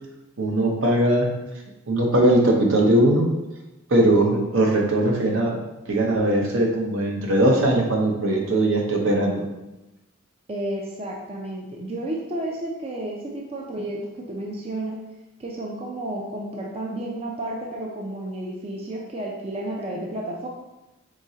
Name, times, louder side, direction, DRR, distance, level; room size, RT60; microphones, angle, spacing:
voice 1, 0.4-1.3 1.9-3.3 3.9-5.6 5.9-9.5, right 1 dB, 65° right, 0 dB, 0.8 m, -20 dB
voice 2, 10.5-15.0 15.4-20.5, right 1 dB, 30° right, -1 dB, 0.4 m, -31 dB
4.7 x 3.7 x 2.7 m, 0.98 s
head